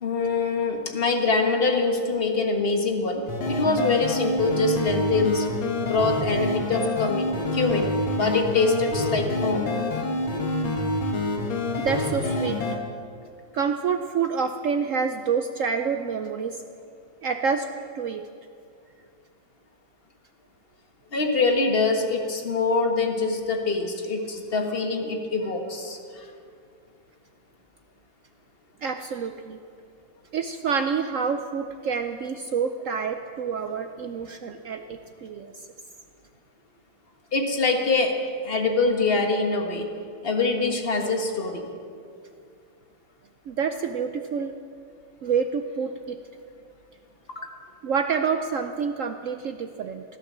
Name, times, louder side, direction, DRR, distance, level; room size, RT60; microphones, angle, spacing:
voice 1, 0.0-5.5 5.8-9.7 21.1-26.2 37.3-39.9 40.2-41.6 47.3-47.5, left 3 dB, 30° left, 3 dB, 1.6 m, -24 dB
sound 1, 3.3-12.8, left 2 dB, 85° left, 2.4 m, -27 dB
voice 2, 11.8-12.6 13.5-16.6 17.2-17.7 17.9-18.3 28.8-29.6 30.3-35.7 43.5-44.6 45.2-46.2 47.8-50.0, right 6 dB, 80° right, 7 dB, 0.7 m, -27 dB
15.5 x 12.0 x 7.4 m, 2.3 s
omnidirectional pair, 2.1 m